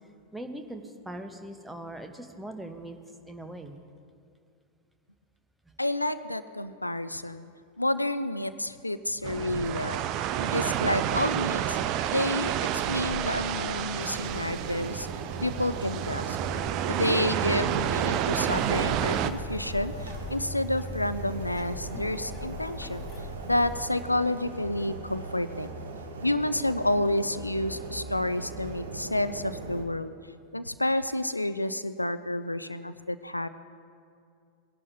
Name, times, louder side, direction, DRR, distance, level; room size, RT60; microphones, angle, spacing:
voice 1, 0.3-3.0 3.2-3.8, right 1 dB, 5° right, 6 dB, 0.9 m, -40 dB
voice 2, 5.8-7.5 7.8-10.0 10.4-11.8 12.1-15.1 15.4-16.4 16.9-23.1 23.5-25.7 26.2-30.1 30.5-33.5, left 1 dB, 85° left, 13 dB, 0.4 m, -29 dB
sound 1, 9.2-19.3, right 10 dB, 40° right, 0.5 m, -29 dB
sound 2, 14.0-29.8, right 2 dB, 65° right, 1.1 m, -40 dB
Bird, 18.5-23.8, left 2 dB, 25° left, 2.2 m, -40 dB
19.5 x 11.0 x 2.7 m, 2.4 s
figure-of-eight pair, 90°, 0 cm